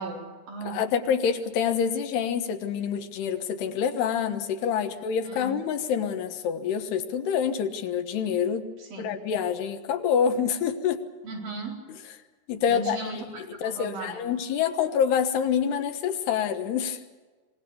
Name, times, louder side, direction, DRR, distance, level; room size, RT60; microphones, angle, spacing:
voice 1, 0.0-0.8 5.2-5.5 8.8-9.1 11.2-11.8 12.7-14.3, right 3 dB, 60° right, -1 dB, 5.8 m, -37 dB
voice 2, 0.6-8.7 9.0-11.0 11.9-12.0 12.5-17.0, left 7 dB, 80° left, 8 dB, 3.4 m, -27 dB
25.0 x 20.5 x 7.0 m, 1.4 s
omnidirectional pair, 4.7 m